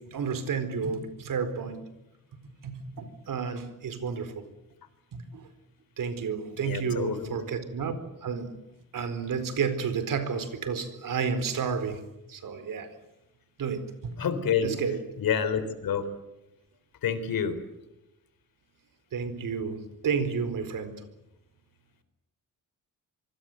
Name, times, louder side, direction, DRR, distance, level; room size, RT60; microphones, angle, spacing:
voice 1, 0.0-1.8 2.6-4.5 5.1-5.4 6.0-7.9 8.2-8.5 8.9-12.0 12.3-12.9 13.6-14.1 14.6-15.0 19.1-21.0, right 6 dB, 70° right, 11 dB, 4.4 m, -31 dB
voice 2, 6.6-7.4 14.2-14.7 15.2-16.1 17.0-17.6, left 7 dB, 85° left, 11 dB, 4.1 m, -28 dB
26.5 x 24.5 x 8.0 m, 0.92 s
wide cardioid pair, 145°, 34 cm